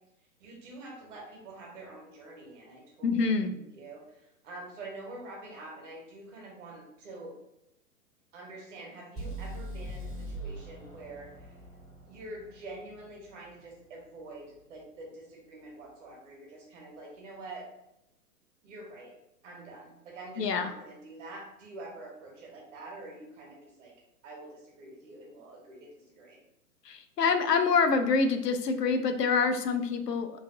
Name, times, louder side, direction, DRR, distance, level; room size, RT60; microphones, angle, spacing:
voice 1, 0.4-7.3 8.3-11.5 12.1-17.7 18.6-19.1 19.4-23.9 24.2-26.4, right 2 dB, 50° right, -1 dB, 1.2 m, -46 dB
voice 2, 3.0-3.5 20.4-20.7 26.8-30.3, left 4 dB, 85° left, 7 dB, 0.5 m, -26 dB
sound 1, 9.2-13.1, right 1 dB, ahead, 0.4 m, -41 dB
3.1 x 2.6 x 2.5 m, 0.85 s
figure-of-eight pair, 125°, 47 cm